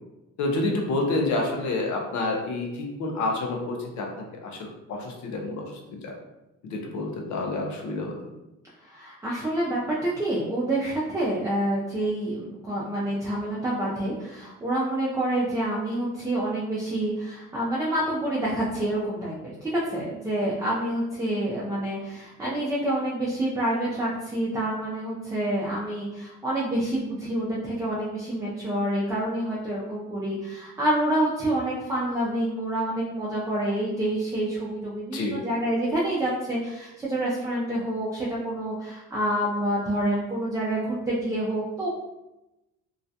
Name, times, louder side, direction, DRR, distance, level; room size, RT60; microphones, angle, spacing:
voice 1, 0.4-4.1 4.4-6.1 6.6-8.3 35.1-35.4, left 2 dB, 70° left, 1 dB, 0.6 m, -29 dB
voice 2, 8.8-41.9, right 1 dB, 10° right, -6 dB, 0.5 m, -27 dB
2.4 x 2.1 x 2.7 m, 0.97 s
cardioid pair, 90°, 30 cm